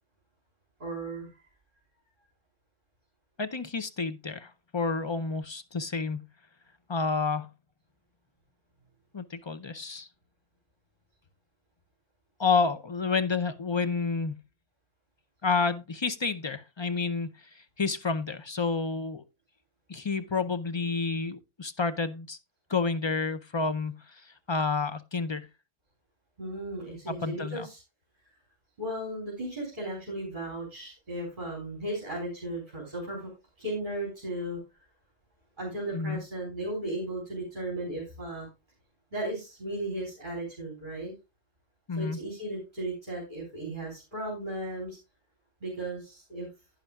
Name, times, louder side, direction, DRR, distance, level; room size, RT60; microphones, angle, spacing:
voice 1, 0.8-1.3 26.4-27.8 28.8-33.3 33.6-34.6 35.6-38.5 39.1-41.1 42.0-45.0 45.6-46.5, right 1 dB, 40° right, 3.7 m, -35 dB
voice 2, 3.4-6.2 6.9-7.5 9.1-10.1 12.4-14.4 15.4-17.3 17.6-19.2 19.9-22.4 22.7-25.5 27.1-27.7 35.9-36.2 41.9-42.2, left 4 dB, 40° left, 0.4 m, -30 dB
11.0 x 10.0 x 2.3 m
omnidirectional pair, 1.2 m